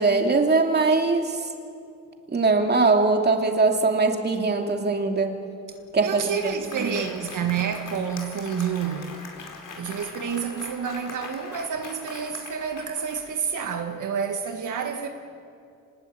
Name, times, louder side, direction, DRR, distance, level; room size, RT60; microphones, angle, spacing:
voice 1, 0.0-1.4 2.3-5.4 5.9-6.5 6.8-6.9, right 3 dB, 30° right, 3 dB, 2.7 m, -21 dB
Applause, 5.7-5.8 6.1-13.6, left 4 dB, 70° left, 4.5 m, -42 dB
voice 2, 6.0-9.2 9.8-15.1, right 7 dB, 65° right, 4 dB, 1.8 m, -29 dB
26.0 x 20.0 x 8.6 m, 2.5 s
cardioid pair, 105°, 33 cm